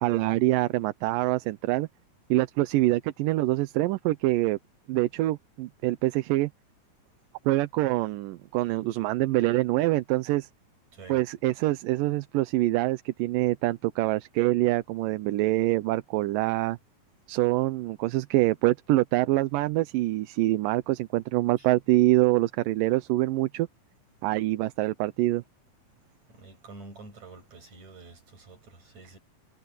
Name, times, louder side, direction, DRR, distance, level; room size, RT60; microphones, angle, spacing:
voice 1, 0.0-1.9 2.3-4.6 4.9-6.5 7.5-10.5 11.1-16.8 17.3-23.7 24.2-25.4, right 17 dB, 80° right, 2.3 m, -25 dB
voice 2, 26.3-29.2, right 3 dB, 55° right, 8.5 m, -48 dB
omnidirectional pair, 3.9 m